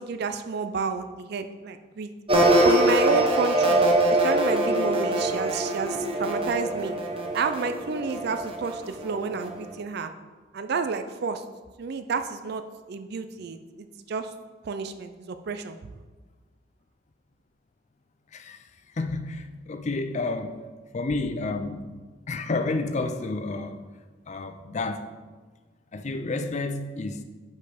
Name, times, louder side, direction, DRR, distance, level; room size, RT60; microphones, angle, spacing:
voice 1, 0.0-2.1 2.6-7.0 7.3-10.1 10.5-11.4 11.8-12.6 12.9-14.3 14.6-15.8, right 4 dB, 55° right, 9 dB, 0.4 m, -30 dB
sound 1, 2.3-9.7, right 1 dB, 30° right, 0.8 m, -23 dB
voice 2, 18.3-18.7 19.0-20.6 20.9-22.0 22.3-23.8 24.3-25.1 25.9-27.2, left 3 dB, 35° left, 7 dB, 0.5 m, -30 dB
6.3 x 5.3 x 5.1 m, 1.3 s
head